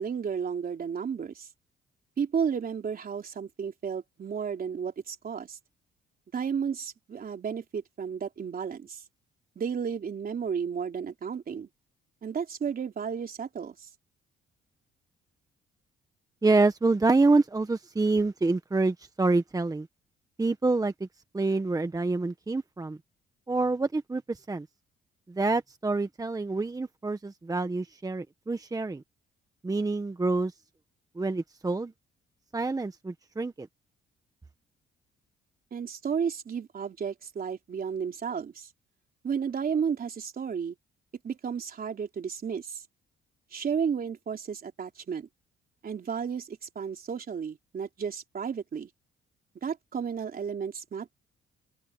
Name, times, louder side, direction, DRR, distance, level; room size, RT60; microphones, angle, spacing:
voice 1, 0.0-1.5 2.2-5.6 6.3-9.0 9.6-11.7 12.2-13.9 35.7-38.7 39.2-40.8 41.2-42.8 43.5-45.3 45.8-48.9 49.6-51.1, right 7 dB, 45° right, 3.5 m, -33 dB
voice 2, 16.4-19.9 20.4-21.1 21.3-23.0 23.5-24.7 25.3-29.0 29.6-30.5 31.1-31.9 32.5-33.7, right 3 dB, 20° right, 1.2 m, -27 dB
open air
cardioid pair, 90°, 20 cm